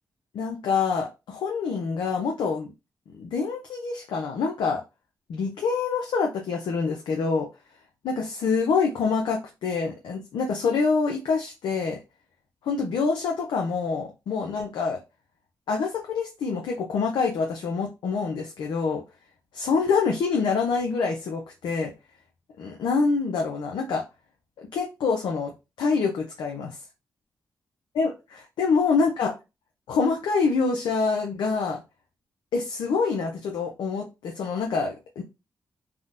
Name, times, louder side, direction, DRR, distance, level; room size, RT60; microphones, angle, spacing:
voice 1, 0.3-2.7 3.2-4.8 5.3-7.5 8.0-12.0 12.6-15.0 15.7-19.0 19.5-21.9 22.6-24.0 24.7-25.5 25.8-26.8 28.0-29.3 29.9-31.8 32.5-35.2, left 4 dB, 85° left, 1 dB, 0.5 m, -26 dB
3.5 x 2.1 x 2.4 m, 0.26 s
supercardioid pair, 45°, 8 cm